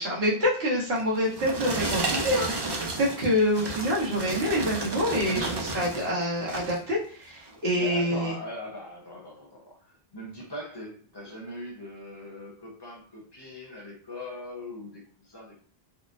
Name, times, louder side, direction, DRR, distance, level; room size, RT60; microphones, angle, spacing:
voice 1, 0.0-8.3, equal, 80° right, -6 dB, 1.5 m, -26 dB
sound 1, 1.0-6.1 6.4-6.8 7.4-7.5, right 2 dB, 40° right, 0.4 m, -32 dB
voice 2, 7.7-9.8 10.1-15.7, left 1 dB, 25° left, -2 dB, 0.8 m, -40 dB
3.8 x 2.0 x 2.5 m, 0.43 s
omnidirectional pair, 1.0 m